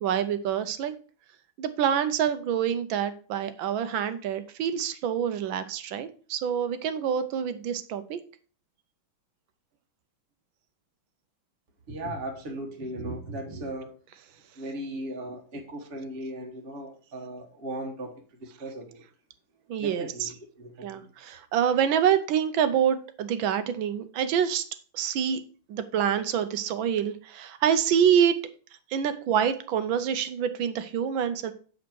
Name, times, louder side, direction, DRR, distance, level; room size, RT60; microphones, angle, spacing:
voice 1, 0.0-0.9 1.6-8.2 19.7-20.3 20.8-24.6 24.9-25.4 25.7-28.4 28.9-31.5, right 8 dB, 75° right, 11 dB, 1.4 m, -26 dB
voice 2, 11.9-13.9 14.6-19.0 19.8-21.1, right 1 dB, 35° right, 1 dB, 1.2 m, -37 dB
7.9 x 5.2 x 4.5 m, 0.40 s
omnidirectional pair, 2.3 m